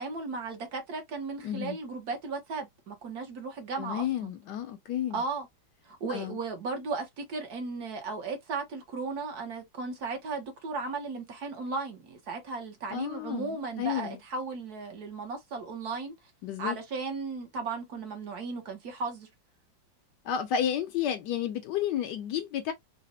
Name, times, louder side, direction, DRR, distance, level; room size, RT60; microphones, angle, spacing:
voice 1, 0.0-4.3 5.1-5.5 5.8-16.1 16.6-19.3, right 4 dB, 60° right, 1.2 m, -36 dB
voice 2, 1.4-1.8 3.8-5.2 6.1-6.4 12.9-14.2 16.4-16.8 20.2-22.7, left 9 dB, 70° left, 1.1 m, -31 dB
4.0 x 2.1 x 2.6 m
omnidirectional pair, 2.1 m